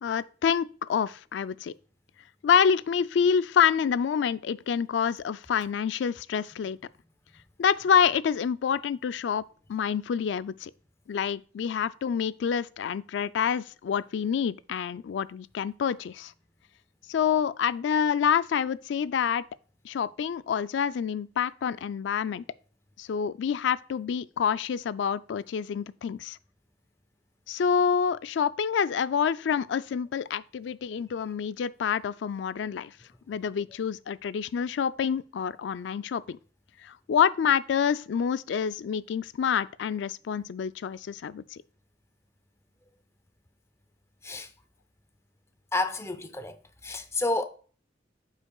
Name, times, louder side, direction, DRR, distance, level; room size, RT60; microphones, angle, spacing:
voice 1, 0.0-1.7 2.4-6.8 7.6-9.4 9.7-10.7 11.1-16.3 17.1-19.4 19.8-22.4 23.0-26.4 27.5-32.9 33.3-36.4 36.8-41.6, left 7 dB, 75° left, 0.3 m, -27 dB
voice 2, 45.7-46.6 46.8-47.5, left 2 dB, 15° left, 0.5 m, -29 dB
8.2 x 5.7 x 2.3 m
head